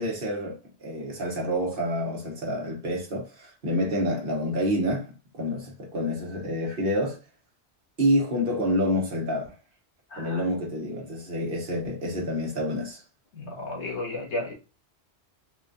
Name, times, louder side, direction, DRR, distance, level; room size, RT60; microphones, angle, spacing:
voice 1, 0.0-5.0 5.3-7.2 8.0-9.5 10.2-13.0, equal, 55° right, 1.2 m, -28 dB
voice 2, 10.1-10.4 13.3-14.5, left 2 dB, 90° left, 1.5 m, -33 dB
4.1 x 2.3 x 2.6 m
omnidirectional pair, 1.1 m